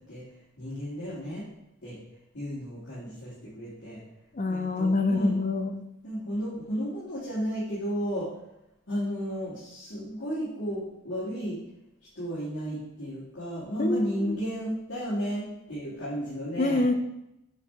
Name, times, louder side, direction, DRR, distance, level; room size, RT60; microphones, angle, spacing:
voice 1, 0.0-1.4 1.8-2.0 2.3-4.0 4.5-5.4 6.0-8.3 8.9-11.6 12.1-16.8, equal, 65° left, -11 dB, 2.2 m, -33 dB
voice 2, 4.3-5.8 13.8-14.4 16.6-16.9, left 2 dB, 35° left, 7 dB, 0.5 m, -26 dB
6.8 x 4.4 x 3.7 m, 0.87 s
head